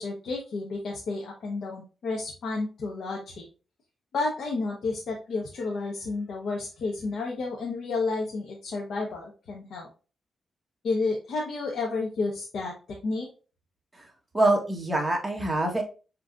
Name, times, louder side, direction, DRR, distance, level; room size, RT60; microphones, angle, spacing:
voice 1, 0.0-3.4 4.1-9.9 10.8-12.7 13.0-13.3, left 3 dB, 75° left, -2 dB, 1.1 m, -31 dB
voice 2, 14.3-15.8, right 2 dB, 15° right, 1 dB, 1.4 m, -25 dB
6.1 x 3.1 x 2.5 m, 0.34 s
cardioid pair, 105°, 0 cm